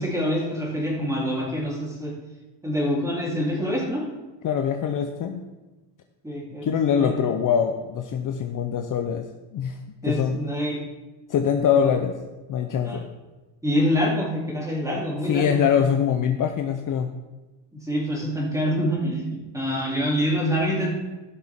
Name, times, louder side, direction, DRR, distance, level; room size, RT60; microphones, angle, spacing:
voice 1, 0.0-2.1 2.6-4.0 6.2-7.2 10.0-10.8 11.8-11.9 12.8-13.0 13.6-15.6 17.7-20.9, equal, 5° right, -4 dB, 3.6 m, -26 dB
voice 2, 4.4-5.5 6.6-10.4 11.3-12.2 12.5-13.1 15.3-17.1, left 8 dB, 40° left, 6 dB, 0.7 m, -23 dB
16.5 x 6.1 x 3.7 m, 1.2 s
cardioid pair, 120°, 47 cm